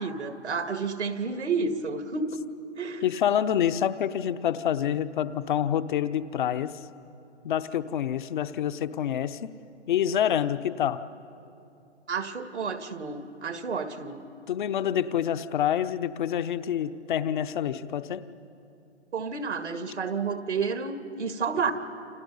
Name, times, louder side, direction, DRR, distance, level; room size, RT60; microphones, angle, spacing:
voice 1, 0.0-2.4 2.8-3.0 12.1-14.2 19.1-21.7, right 5 dB, 75° right, 8 dB, 2.0 m, -30 dB
voice 2, 3.0-6.8 7.4-9.5 9.9-11.0 14.5-18.3, left 10 dB, 45° left, 13 dB, 0.9 m, -27 dB
29.5 x 27.5 x 5.5 m, 2.8 s
figure-of-eight pair, 130°, 35 cm